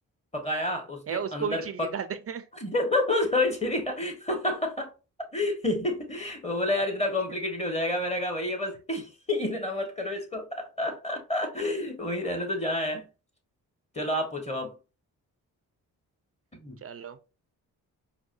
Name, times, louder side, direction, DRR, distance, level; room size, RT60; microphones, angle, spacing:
voice 1, 0.3-1.9 2.6-4.9 5.3-13.1 13.9-14.8 16.5-16.8, left 1 dB, 15° left, 1.4 m, -29 dB
voice 2, 1.1-2.5 7.3-7.4 16.8-17.2, right 7 dB, 35° right, 0.5 m, -34 dB
4.7 x 2.2 x 2.6 m
supercardioid pair, 50°, 40 cm